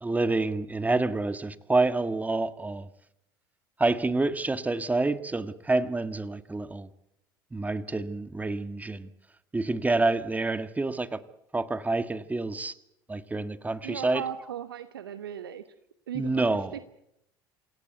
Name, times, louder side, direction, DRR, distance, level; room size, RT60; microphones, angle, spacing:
voice 1, 0.0-2.9 3.8-6.9 7.5-9.1 9.5-11.2 11.5-12.7 13.1-14.2 16.1-16.7, right 2 dB, 15° right, 13 dB, 1.6 m, -28 dB
voice 2, 13.8-15.6 16.1-16.4 16.7-16.8, right 9 dB, 80° right, 12 dB, 1.1 m, -36 dB
27.0 x 18.0 x 8.1 m, 0.82 s
figure-of-eight pair, 70°, 12 cm